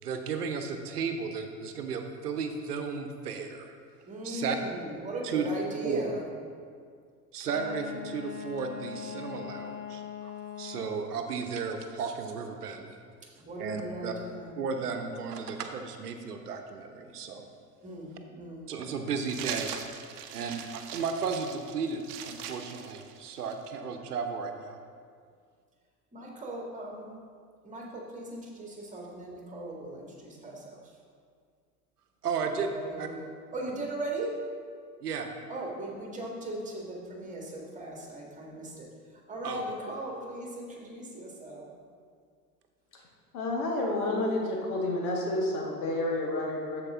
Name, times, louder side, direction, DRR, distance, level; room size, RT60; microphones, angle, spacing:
voice 1, 0.0-3.8 4.2-4.6 5.3-5.4 5.8-6.0 7.3-10.3 10.6-13.0 13.6-14.1 14.6-17.5 18.7-19.7 20.3-24.8 32.2-32.7 33.0-33.1 35.0-35.3 39.4-39.6, right 5 dB, 75° right, 5 dB, 0.9 m, -34 dB
voice 2, 4.0-6.3 7.6-7.8 13.4-14.6 17.8-18.7 26.1-27.1 27.6-31.0 32.4-34.4 35.5-41.7, right 2 dB, 15° right, -1 dB, 1.9 m, -38 dB
Wind instrument woodwind instrument, 7.4-11.2, left 8 dB, 85° left, 1.1 m, -41 dB
sound 1, 19.2-23.7, right 8 dB, 45° right, 0.8 m, -41 dB
voice 3, 43.3-46.8, left 2 dB, 65° left, -1 dB, 1.7 m, -30 dB
13.0 x 4.8 x 3.6 m, 2.1 s
figure-of-eight pair, 80°, 47 cm